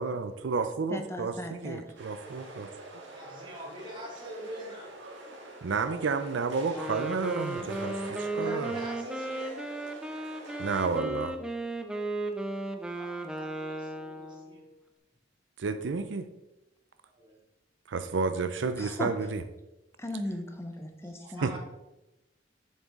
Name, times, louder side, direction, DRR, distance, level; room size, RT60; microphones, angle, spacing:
voice 1, 0.0-2.7 5.6-8.8 10.6-11.4 15.6-16.3 17.9-19.4 21.4-21.6, right 4 dB, 70° right, 10 dB, 0.5 m, -31 dB
voice 2, 0.9-1.8 18.8-19.1 20.0-21.5, left 1 dB, 15° left, 6 dB, 0.8 m, -37 dB
sound 1, 2.0-11.0, right 2 dB, 90° right, 1.5 m, -45 dB
voice 3, 3.1-5.0 8.2-9.6 12.9-14.7 17.0-17.4 21.0-21.6, right 1 dB, 25° right, -3 dB, 2.1 m, -44 dB
Wind instrument woodwind instrument, 6.7-14.6, right 2 dB, 5° right, 0.5 m, -35 dB
6.9 x 6.4 x 3.6 m, 0.96 s
head